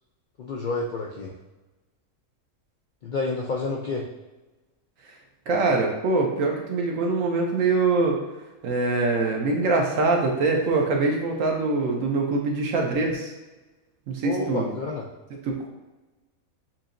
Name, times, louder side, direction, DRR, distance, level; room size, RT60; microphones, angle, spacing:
voice 1, 0.4-1.3 3.0-4.0 14.2-15.1, left 3 dB, 80° left, -1 dB, 0.4 m, -29 dB
voice 2, 5.5-8.2 8.6-13.3 14.1-14.7 15.5-15.7, right 3 dB, 70° right, 1 dB, 1.1 m, -23 dB
7.1 x 2.8 x 2.6 m, 1.1 s
omnidirectional pair, 1.5 m